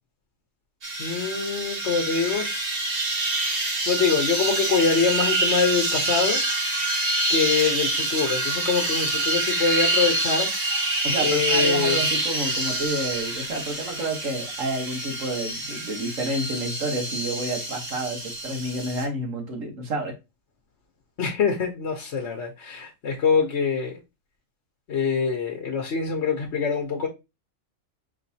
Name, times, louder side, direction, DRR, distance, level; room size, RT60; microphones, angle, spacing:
sound 1, 0.8-19.0, right 2 dB, 50° right, 1.3 m, -26 dB
voice 1, 1.0-2.9 3.9-6.4 7.3-10.5 11.2-12.0 21.2-24.0 24.9-27.1, left 5 dB, 60° left, 1.1 m, -24 dB
voice 2, 11.0-20.1, right 1 dB, 75° right, 1.6 m, -29 dB
4.8 x 3.1 x 2.7 m
omnidirectional pair, 1.4 m